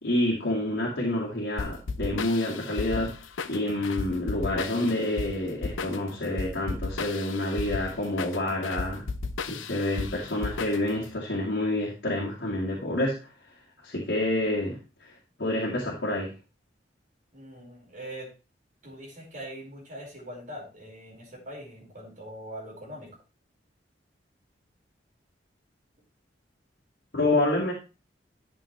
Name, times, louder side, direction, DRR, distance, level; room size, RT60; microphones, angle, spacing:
voice 1, 0.0-3.2 3.4-9.1 9.5-13.3 13.8-15.1 15.4-16.3 27.1-27.7, left 1 dB, 60° left, -5 dB, 2.0 m, -28 dB
sound 1, 1.6-11.1, left 4 dB, 90° left, 0.7 m, -35 dB
voice 2, 17.3-18.3 18.8-23.2, equal, 45° right, -2 dB, 5.0 m, -42 dB
11.5 x 7.2 x 3.2 m, 0.31 s
head